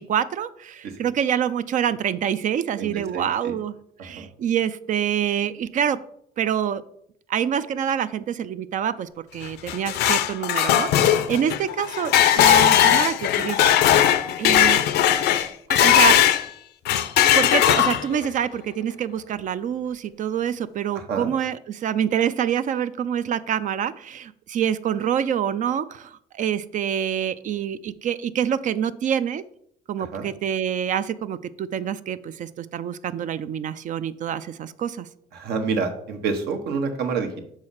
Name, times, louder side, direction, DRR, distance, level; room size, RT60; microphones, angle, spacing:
voice 1, 0.0-3.7 4.0-6.0 6.4-6.8 7.3-13.8 14.4-14.8 15.7-16.2 17.3-29.4 29.9-35.1, right 9 dB, 50° right, 13 dB, 0.4 m, -26 dB
voice 2, 2.8-3.5 4.0-4.3 20.9-21.3 30.0-30.3 35.3-37.5, right 5 dB, 75° right, 5 dB, 1.3 m, -28 dB
sound 1, 9.4-16.5 16.9-18.3, left 11 dB, 75° left, 0.6 m, -18 dB
6.3 x 4.8 x 5.7 m, 0.71 s
cardioid pair, 110°, 17 cm